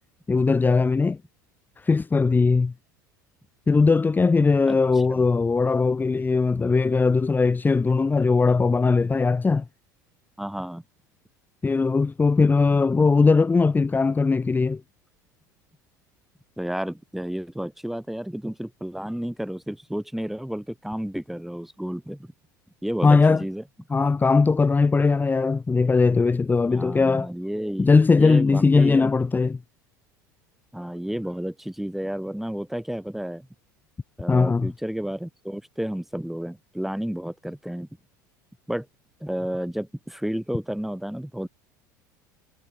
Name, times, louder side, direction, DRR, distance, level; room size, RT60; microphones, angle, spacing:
voice 1, 0.3-1.2 1.8-2.7 3.7-9.6 11.6-14.8 23.0-23.4 23.9-27.3 27.8-29.6 34.3-34.7, left 4 dB, 20° left, 3.2 m, -20 dB
voice 2, 10.4-10.8 16.6-22.3 22.8-23.6 26.7-27.9 28.1-29.1 30.7-33.5 34.2-37.9 38.7-38.9 39.2-41.5, equal, ahead, 7.5 m, -31 dB
figure-of-eight pair, 70°, 10 cm